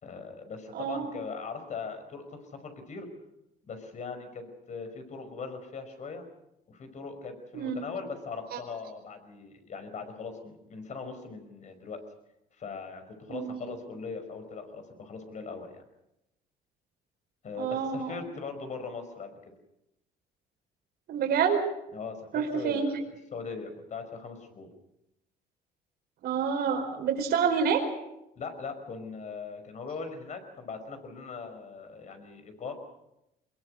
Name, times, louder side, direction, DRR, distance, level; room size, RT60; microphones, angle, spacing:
voice 1, 0.0-3.1 3.7-6.2 6.7-12.0 12.6-15.8 17.4-19.4 21.9-23.0 23.3-24.7 28.4-32.7, left 4 dB, 45° left, 8 dB, 5.4 m, -40 dB
voice 2, 0.7-1.2 7.5-7.8 8.5-8.6 13.3-13.7 17.6-18.2 21.1-21.6 22.3-22.9 26.2-27.8, right 6 dB, 65° right, 3 dB, 4.7 m, -28 dB
23.5 x 21.5 x 6.5 m, 0.86 s
cardioid pair, 110°, 17 cm